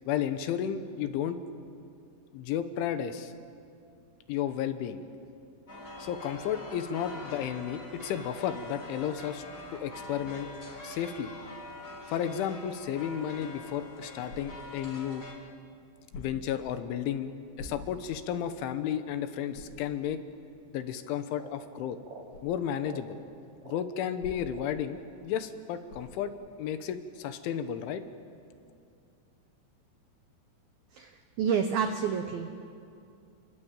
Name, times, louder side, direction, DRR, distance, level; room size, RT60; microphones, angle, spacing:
voice 1, 0.1-1.4 2.3-3.3 4.3-5.0 6.0-9.4 9.7-10.5 10.8-11.3 12.1-15.2 16.2-17.3 17.6-20.2 20.7-22.0 22.4-23.2 23.6-26.3 26.6-28.0, left 9 dB, 75° left, 9 dB, 3.4 m, -33 dB
sound 1, 5.7-15.3, left 1 dB, 20° left, 3.4 m, -44 dB
sound 2, 14.2-14.8 16.1-16.6 17.5-18.2 18.7-18.8 19.5-19.9 22.3-22.5 24.2-24.7 25.9-26.2, left 2 dB, 55° left, 6.2 m, -45 dB
sound 3, 21.4-21.6 22.0-22.3 22.8-23.1 23.6-23.9 24.5-24.8, right 2 dB, 30° right, 3.5 m, -47 dB
voice 2, 31.4-32.5, right 7 dB, 80° right, 7 dB, 2.1 m, -28 dB
30.0 x 22.0 x 9.0 m, 2.4 s
omnidirectional pair, 5.8 m